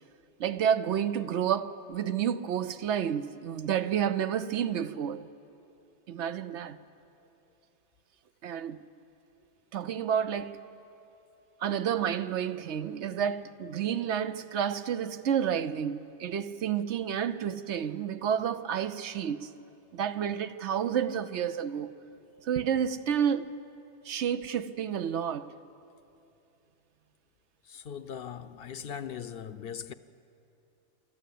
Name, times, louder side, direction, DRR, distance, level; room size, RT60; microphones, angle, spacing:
voice 1, 0.4-5.3 6.1-6.8 8.4-8.8 9.7-10.6 11.6-19.6 19.9-22.0 22.4-23.6 24.0-25.6, right 8 dB, 75° right, 1.0 m, -30 dB
voice 2, 27.6-29.9, left 8 dB, 60° left, 0.8 m, -40 dB
28.5 x 13.5 x 8.5 m
omnidirectional pair, 1.2 m